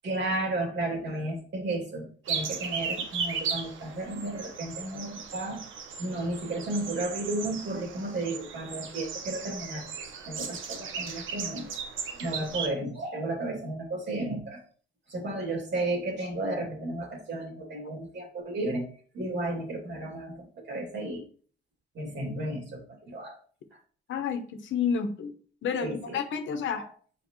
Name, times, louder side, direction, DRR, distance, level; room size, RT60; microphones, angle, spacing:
voice 1, 0.0-5.6 6.0-9.8 10.3-11.7 12.1-14.6 15.1-18.9 19.1-21.2 21.9-23.4 25.8-26.2 26.7-26.9, right 2 dB, 60° right, 1 dB, 3.0 m, -33 dB
sound 1, 2.3-12.7, right 6 dB, 80° right, 1.2 m, -36 dB
voice 2, 24.1-25.3 25.6-26.9, left 6 dB, 75° left, 8 dB, 1.1 m, -30 dB
7.4 x 5.1 x 3.2 m, 0.44 s
cardioid pair, 90°, 20 cm